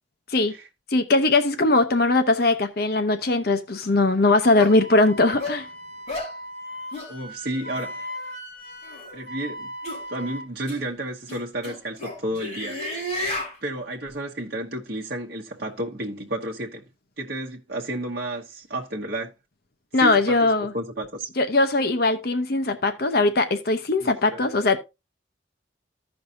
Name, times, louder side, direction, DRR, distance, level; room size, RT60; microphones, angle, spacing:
voice 1, 0.9-5.7 19.9-20.7 21.4-24.8, left 2 dB, 50° left, 0.7 m, -20 dB
sound 1, 3.8-3.9 4.6-4.7 5.4-5.6 6.1-6.3 6.9-7.1 7.7-7.9 8.8-9.1 9.8-10.0 10.7-10.8 11.3-13.5, left 1 dB, 35° left, 4.4 m, -32 dB
Wind instrument woodwind instrument, 4.7-10.5, equal, 85° left, 2.9 m, -38 dB
voice 2, 7.1-8.1 9.1-9.7 10.1-13.1 13.6-16.8 17.2-19.3 19.9-21.3 24.0-24.4, right 1 dB, 50° right, 1.0 m, -32 dB
15.0 x 5.4 x 2.6 m
head